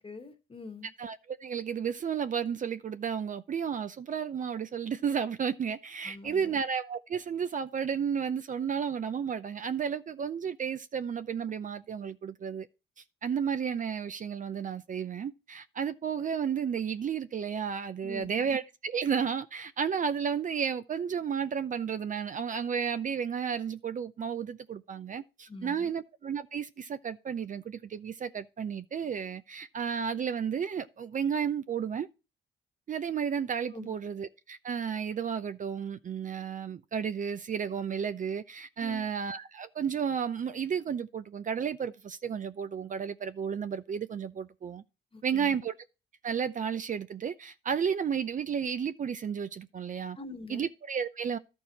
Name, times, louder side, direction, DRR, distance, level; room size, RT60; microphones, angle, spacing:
voice 1, 0.0-0.9 6.0-6.6 18.0-18.5 25.5-25.9 33.7-33.9 38.8-39.1 45.1-45.6 50.1-50.7, left 3 dB, 25° left, 1.4 m, -45 dB
voice 2, 1.0-12.7 13.2-32.1 32.9-44.8 45.2-45.7 46.2-50.2 50.5-51.4, right 7 dB, 40° right, 0.5 m, -32 dB
12.0 x 4.6 x 4.1 m
cardioid pair, 90°, 20 cm